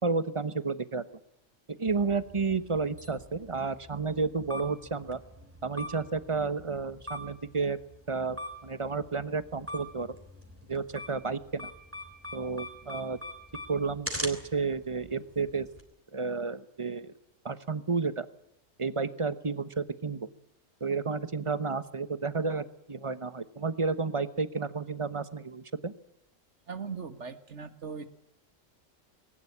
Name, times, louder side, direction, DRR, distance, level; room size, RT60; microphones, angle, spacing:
voice 1, 0.0-1.0 1.8-5.2 5.6-7.8 8.1-10.1 10.7-11.7 12.3-13.2 13.7-15.7 16.1-17.1 17.4-18.3 18.8-20.3 20.8-25.9, right 4 dB, 25° right, 13 dB, 1.0 m, -31 dB
sound 1, 1.9-15.8, equal, 10° right, 3.3 m, -43 dB
voice 2, 26.7-28.1, right 5 dB, 65° right, 10 dB, 1.9 m, -39 dB
20.0 x 19.0 x 9.9 m, 0.76 s
omnidirectional pair, 1.3 m